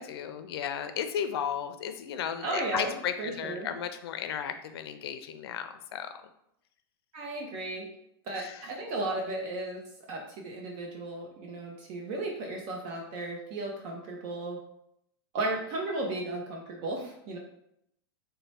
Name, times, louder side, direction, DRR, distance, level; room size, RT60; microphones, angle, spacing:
voice 1, 0.0-6.1 8.4-8.6, left 8 dB, 80° left, 9 dB, 0.4 m, -34 dB
voice 2, 2.4-3.7 7.1-7.9 8.3-9.8 10.1-14.6 15.3-17.4, right 2 dB, 40° right, 0 dB, 0.7 m, -35 dB
3.2 x 2.1 x 4.1 m, 0.76 s
supercardioid pair, 160°, 13 cm